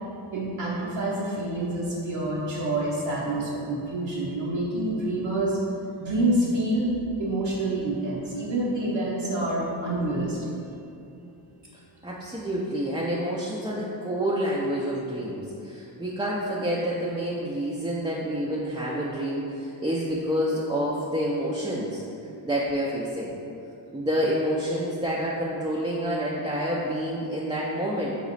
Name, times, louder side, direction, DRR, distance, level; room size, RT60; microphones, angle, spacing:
voice 1, 0.3-5.6 6.0-6.9 7.2-10.5, right 1 dB, 75° right, -7 dB, 0.8 m, -27 dB
voice 2, 12.0-22.0 22.4-23.3 23.9-28.2, equal, 10° right, -6 dB, 0.3 m, -28 dB
4.0 x 2.9 x 4.0 m, 2.7 s
cardioid pair, 75°, 46 cm